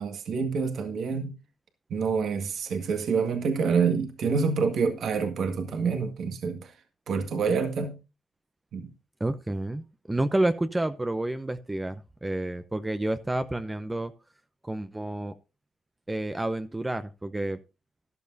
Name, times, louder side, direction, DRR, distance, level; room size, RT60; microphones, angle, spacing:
voice 1, 0.0-1.4 1.9-6.7 7.1-8.0 8.7-8.9, right 5 dB, 65° right, 1.8 m, -27 dB
voice 2, 9.2-14.1 14.6-15.3 16.1-17.6, right 1 dB, 15° right, 0.7 m, -29 dB
13.5 x 11.5 x 2.7 m
cardioid pair, 90°, 0 cm